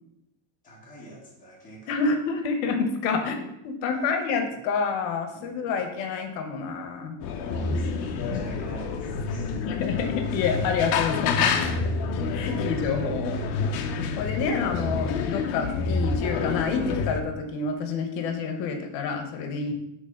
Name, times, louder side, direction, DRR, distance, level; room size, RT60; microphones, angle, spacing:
voice 1, 0.6-2.0 3.9-4.1 5.3-5.7 7.4-9.7 12.5-12.7, right 1 dB, 15° left, -4 dB, 1.5 m, -45 dB
voice 2, 1.9-7.1 9.6-11.6 12.3-13.6 14.2-19.7, left 5 dB, 80° left, 6 dB, 1.1 m, -28 dB
sound 1, 7.2-17.2, left 4 dB, 50° left, 0.7 m, -28 dB
6.0 x 3.7 x 5.7 m, 0.86 s
cardioid pair, 180°, 49 cm